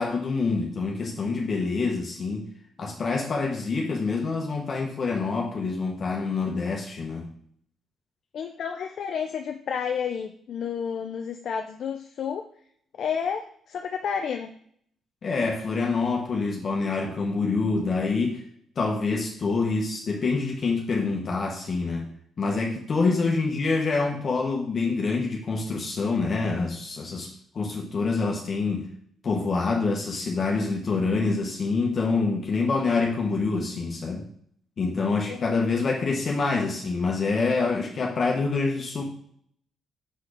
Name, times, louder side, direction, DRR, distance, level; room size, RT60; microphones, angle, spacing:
voice 1, 0.0-2.5 2.8-7.3 15.2-18.4 18.8-22.1 22.4-28.9 29.2-34.3 34.8-39.0, left 4 dB, 45° left, 0 dB, 1.3 m, -26 dB
voice 2, 8.3-12.4 13.0-14.5 23.0-23.2 35.3-35.7, left 7 dB, 65° left, 5 dB, 0.6 m, -31 dB
6.5 x 4.3 x 5.1 m, 0.63 s
cardioid pair, 90°, 0 cm